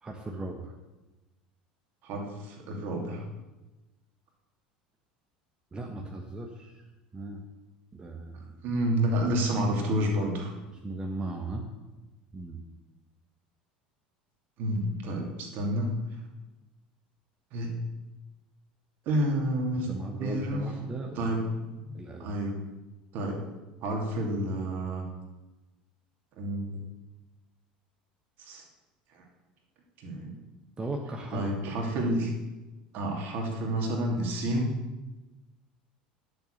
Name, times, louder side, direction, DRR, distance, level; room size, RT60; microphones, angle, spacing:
voice 1, 0.0-0.7 5.7-6.8 7.1-7.4 7.9-8.6 10.8-11.7 12.3-12.7 19.9-21.5 21.9-22.3 30.8-31.5, right 2 dB, 20° right, 1 dB, 1.3 m, -37 dB
voice 2, 2.0-3.2 8.6-10.5 14.6-16.2 17.5-17.8 19.1-19.9 20.2-20.6 21.1-22.6 23.1-23.4 23.8-25.1 26.4-26.8 28.4-28.6 29.1-29.2 30.0-30.3 31.3-32.3 32.9-34.7, right 1 dB, 50° right, 1 dB, 2.7 m, -29 dB
11.0 x 7.0 x 6.5 m, 1.1 s
figure-of-eight pair, 70°, 4 cm